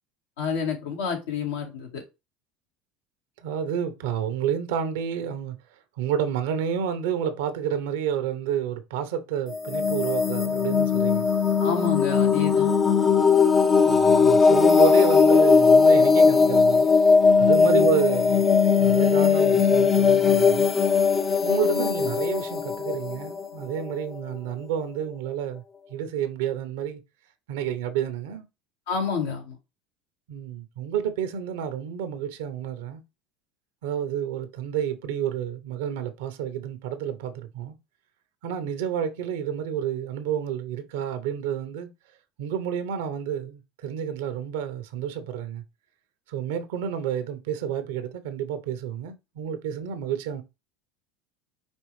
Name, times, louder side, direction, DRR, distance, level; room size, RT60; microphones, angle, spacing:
voice 1, 0.4-2.0 11.6-12.7 17.6-17.9 28.9-29.6, left 6 dB, 85° left, 1.8 m, -29 dB
voice 2, 3.4-5.6 6.0-11.3 13.8-16.9 17.4-18.4 18.8-20.7 21.4-25.6 25.9-27.0 27.5-28.4 30.3-33.0 33.8-37.7 38.4-41.9 42.4-45.6 46.3-50.4, right 9 dB, 80° right, 0.8 m, -30 dB
sound 1, 9.5-24.2, left 5 dB, 20° left, 0.5 m, -19 dB
5.3 x 3.1 x 3.1 m
hypercardioid pair, 85°, 0 cm